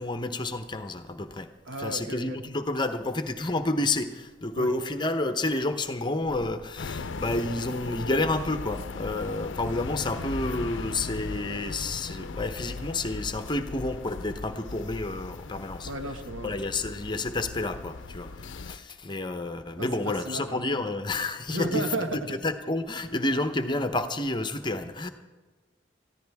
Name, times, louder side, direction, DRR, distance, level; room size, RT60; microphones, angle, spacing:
voice 1, 0.0-1.5 1.8-15.9 16.4-21.9 22.3-25.1, left 2 dB, 25° left, 8 dB, 0.8 m, -30 dB
voice 2, 1.6-2.4 4.6-4.7 15.8-16.5 19.8-20.7 21.5-22.1, right 2 dB, 85° right, 4 dB, 1.7 m, -33 dB
sound 1, 6.8-18.8, left 3 dB, 80° left, 0.6 m, -38 dB
20.5 x 14.5 x 3.5 m, 1.3 s
head